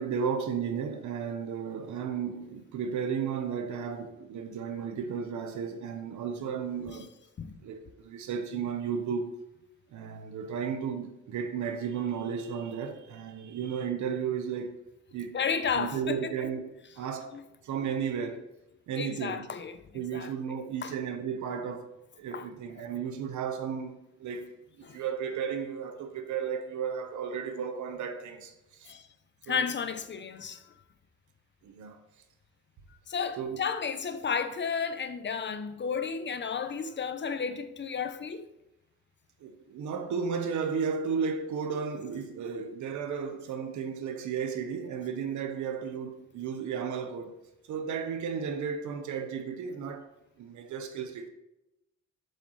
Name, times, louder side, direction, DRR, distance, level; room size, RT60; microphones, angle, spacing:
voice 1, 0.0-7.1 7.6-9.4 9.9-14.7 15.1-15.4 15.7-17.3 17.6-18.5 18.9-19.5 19.9-21.9 22.2-24.5 24.8-28.5 28.8-28.9 29.5-29.7 31.6-32.0 33.4-33.6 39.4-47.3 47.7-50.1 50.4-51.3, right 6 dB, 75° right, 1.1 m, -34 dB
voice 2, 15.3-16.5 17.3-17.4 19.0-19.8 20.1-20.3 20.8-20.9 22.3-22.5 24.8-25.0 28.9-29.1 29.5-30.6 33.1-38.5, left 6 dB, 40° left, 0.7 m, -32 dB
8.1 x 6.7 x 3.2 m
cardioid pair, 90°, 30 cm